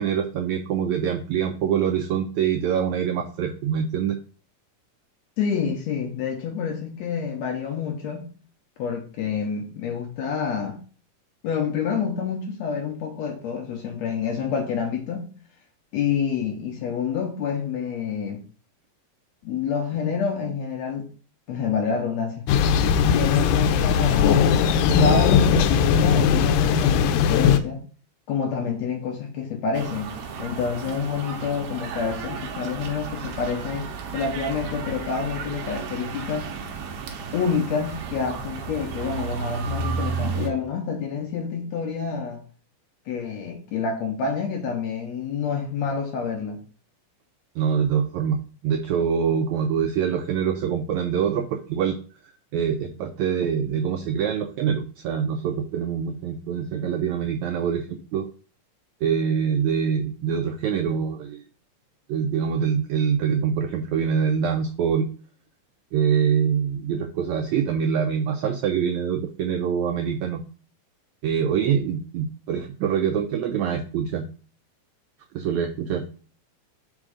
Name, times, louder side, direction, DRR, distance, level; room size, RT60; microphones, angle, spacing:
voice 1, 0.0-4.2 47.6-52.0 52.5-58.3 59.0-61.4 62.1-65.1 65.9-70.4 71.2-74.3 75.3-76.0, right 7 dB, 85° right, 1.6 m, -24 dB
voice 2, 5.4-8.3 8.8-10.8 11.4-15.3 15.9-18.4 19.4-21.1 21.5-22.5 23.0-24.7 25.0-27.8 28.3-30.1 30.4-33.9 34.1-36.5 37.3-42.4 43.1-46.6, left 6 dB, 70° left, 1.8 m, -28 dB
Thunder, 22.5-27.6, left 7 dB, 85° left, 2.2 m, -19 dB
sound 1, 29.7-40.5, right 5 dB, 70° right, 1.8 m, -33 dB
5.2 x 3.7 x 4.9 m
omnidirectional pair, 3.8 m